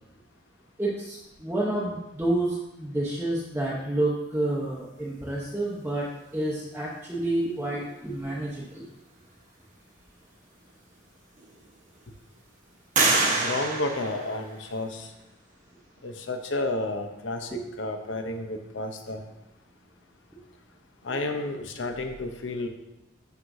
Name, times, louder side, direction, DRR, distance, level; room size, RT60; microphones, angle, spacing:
voice 1, 0.8-8.8 17.5-17.6, right 1 dB, 10° right, -6 dB, 0.9 m, -29 dB
sound 1, 10.7-10.8 11.4-12.0 12.9-14.9, right 3 dB, 40° right, 1.1 m, -26 dB
voice 2, 13.3-15.1 16.0-19.2 21.0-22.7, left 2 dB, 65° left, 5 dB, 0.8 m, -31 dB
12.0 x 4.8 x 2.7 m, 0.91 s
head